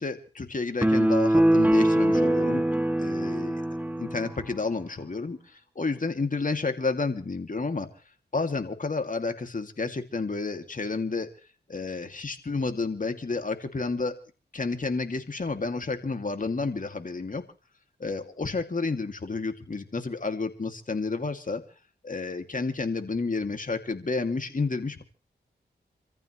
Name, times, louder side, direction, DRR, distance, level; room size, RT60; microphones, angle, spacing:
voice 1, 0.0-2.7 3.0-3.6 4.0-7.9 8.3-11.3 11.7-14.2 14.5-17.4 18.0-21.6 22.0-25.0, left 3 dB, 45° left, 6 dB, 2.8 m, -30 dB
sound 1, 0.8-4.4, right 1 dB, 10° right, 2.6 m, -23 dB
27.5 x 14.5 x 3.3 m, 0.37 s
cardioid pair, 45°, 19 cm